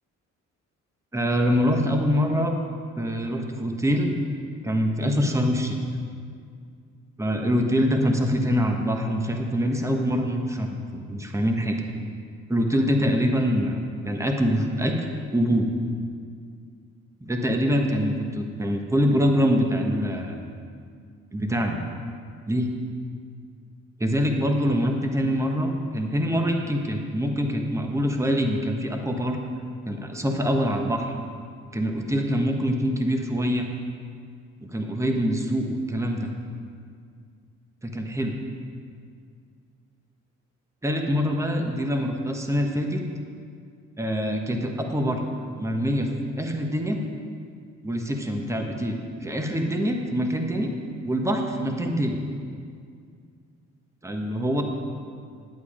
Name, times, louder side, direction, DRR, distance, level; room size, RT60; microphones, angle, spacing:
voice 1, 1.1-2.6 3.0-4.1 4.6-5.8 7.2-10.8 11.1-11.8 12.5-13.8 14.0-15.7 17.2-20.3 21.3-21.8 22.5-22.7 24.0-29.4 29.8-31.1 31.7-33.7 34.6-36.3 37.8-38.4 40.8-43.0 44.0-45.2 45.6-46.1 46.4-47.0 47.8-50.7 51.0-52.2 54.0-54.6, equal, 10° right, 3 dB, 1.2 m, -24 dB
11.0 x 8.7 x 5.0 m, 2.2 s
cardioid pair, 90°, 30 cm